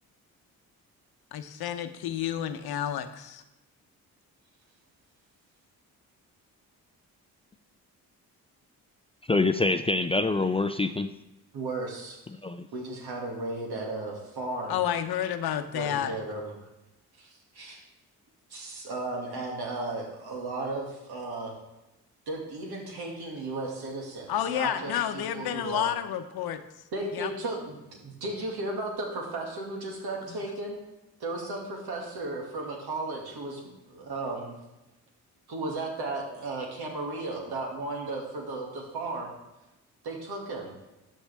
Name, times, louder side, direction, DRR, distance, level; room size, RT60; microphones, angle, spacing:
voice 1, 1.3-3.4 14.7-16.2 24.3-26.6 27.1-27.3 30.3-30.4, left 10 dB, 70° left, 9 dB, 0.8 m, -30 dB
voice 2, 9.3-11.1 12.4-12.7, left 3 dB, 15° left, 9 dB, 0.4 m, -25 dB
voice 3, 11.5-12.2 12.7-14.8 15.7-16.5 17.2-17.8 18.5-21.5 22.3-25.9 26.9-30.8 31.2-34.5 35.5-39.3 40.0-40.7, right 2 dB, 75° right, 0 dB, 2.2 m, -35 dB
13.0 x 5.5 x 3.5 m, 1.0 s
supercardioid pair, 60°, 39 cm